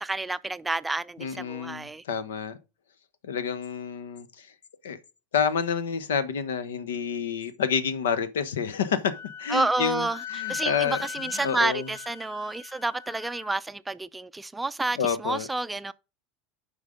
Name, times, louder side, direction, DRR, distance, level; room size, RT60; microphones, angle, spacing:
voice 1, 0.0-2.0 9.5-10.2 10.5-15.9, right 2 dB, 10° right, 0.5 m, -29 dB
voice 2, 1.2-2.6 3.2-4.5 4.8-5.0 5.3-11.9 15.0-15.5, left 7 dB, 80° left, 1.0 m, -29 dB
Wind instrument woodwind instrument, 9.1-13.5, left 11 dB, 65° left, 1.2 m, -38 dB
8.2 x 5.2 x 5.1 m
hypercardioid pair, 80°, 0 cm